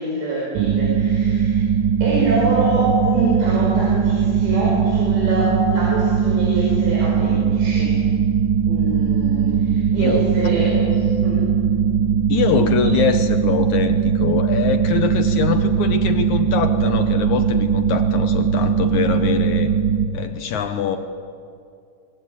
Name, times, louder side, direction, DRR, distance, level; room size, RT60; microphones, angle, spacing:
voice 1, 0.0-1.7 2.0-8.0 8.7-11.5 12.8-12.9, right 2 dB, 85° right, -4 dB, 7.8 m, -25 dB
sound 1, 0.6-20.1, right 7 dB, 60° right, 2.3 m, -19 dB
voice 2, 10.0-10.3 12.3-19.7 20.1-21.0, left 8 dB, 70° left, 7 dB, 1.8 m, -23 dB
29.0 x 22.0 x 9.3 m, 2.4 s
omnidirectional pair, 4.9 m